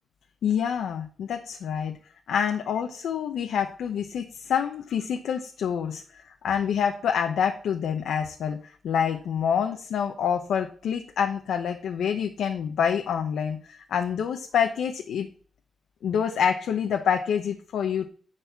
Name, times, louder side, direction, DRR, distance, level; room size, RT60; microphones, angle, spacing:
voice 1, 0.4-2.0 2.3-15.3 16.0-18.0, left 7 dB, 90° left, 4 dB, 0.8 m, -27 dB
10.5 x 4.2 x 7.0 m, 0.43 s
cardioid pair, 90°, 0 cm